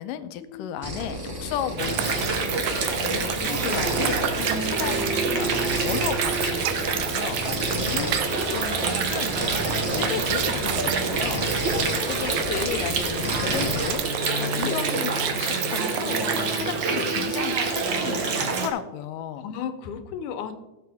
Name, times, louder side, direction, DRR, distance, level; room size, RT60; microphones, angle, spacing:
voice 1, 0.0-11.5 12.1-12.3 12.6-19.5, left 10 dB, 90° left, 11 dB, 2.2 m, -34 dB
sound 1, 0.8-13.9, equal, 10° right, 1.3 m, -33 dB
Water, 1.8-18.7, right 4 dB, 55° right, 1.3 m, -27 dB
sound 2, 1.9-16.5, right 11 dB, 85° right, 2.4 m, -31 dB
voice 2, 3.0-3.8 7.7-8.1 8.5-8.6 11.6-12.2 12.5-12.8 14.4-14.8 16.6-17.1 19.4-20.5, left 8 dB, 75° left, 9 dB, 2.2 m, -34 dB
17.5 x 7.6 x 3.5 m, 1.1 s
omnidirectional pair, 3.8 m